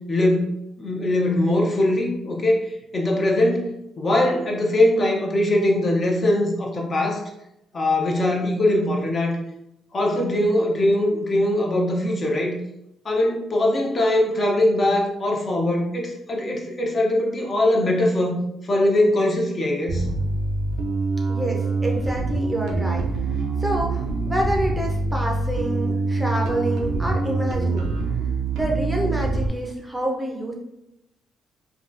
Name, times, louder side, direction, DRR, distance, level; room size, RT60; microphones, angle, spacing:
voice 1, 0.1-0.5 0.8-3.7 4.0-7.2 7.7-9.4 9.9-12.5 13.0-18.4 18.6-20.1, left 1 dB, 40° left, -1 dB, 0.7 m, -21 dB
Bass guitar, 19.9-29.5, right 3 dB, 90° right, 0.4 m, -25 dB
voice 2, 21.3-27.9 28.5-30.5, right 1 dB, 15° right, 0 dB, 0.6 m, -28 dB
3.6 x 2.3 x 2.5 m, 0.87 s
cardioid pair, 90°, 0 cm